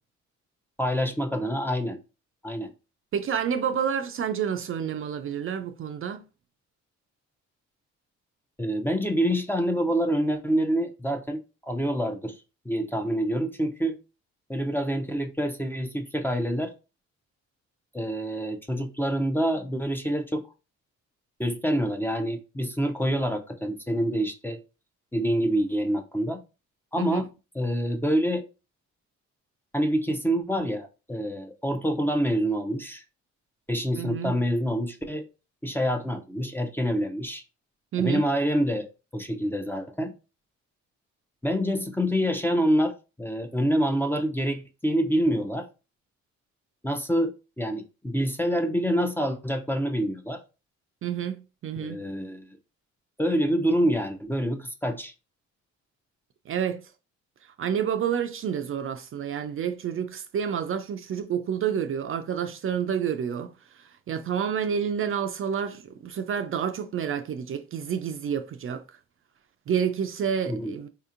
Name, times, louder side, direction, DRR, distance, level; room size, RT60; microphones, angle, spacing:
voice 1, 0.8-2.0 2.4-2.7 8.6-12.4 12.7-14.0 14.5-16.7 17.9-20.4 21.4-24.6 25.1-26.4 26.9-27.3 27.5-28.4 29.7-33.0 33.7-35.3 35.6-37.4 38.0-40.1 41.4-45.7 46.8-50.4 51.7-52.5 53.2-55.1 70.5-70.7, equal, 5° left, 0.5 m, -26 dB
voice 2, 3.1-6.2 27.0-27.2 33.9-34.4 37.9-38.3 51.0-52.0 56.5-56.8 57.4-68.8 69.7-70.9, right 8 dB, 45° right, 0.4 m, -29 dB
4.2 x 2.7 x 2.5 m
cardioid pair, 90°, 30 cm